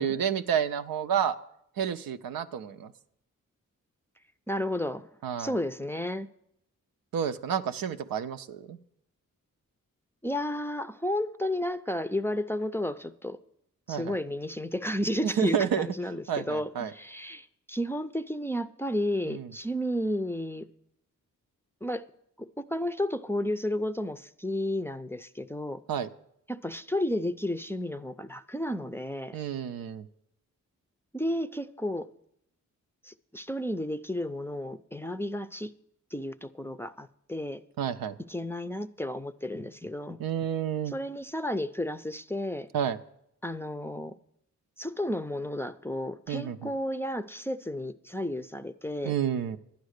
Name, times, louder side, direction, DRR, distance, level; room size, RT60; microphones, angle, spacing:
voice 1, 0.0-1.4 1.8-2.9 5.2-5.5 7.1-8.8 13.9-14.2 15.2-15.9 16.3-16.9 19.2-19.5 25.9-26.1 29.3-30.1 37.8-38.2 40.2-40.9 42.7-43.0 46.3-46.7 49.0-49.6, right 8 dB, 85° right, 0.6 m, -30 dB
voice 2, 4.5-5.1 5.4-6.3 10.2-13.4 13.9-20.7 21.8-22.1 22.4-25.8 26.5-29.4 31.1-32.1 33.0-35.7 36.1-37.6 38.3-40.2 40.9-42.7 43.4-44.2 44.8-49.1, left 1 dB, 5° left, 0.5 m, -32 dB
11.5 x 9.5 x 6.5 m
cardioid pair, 55°, 34 cm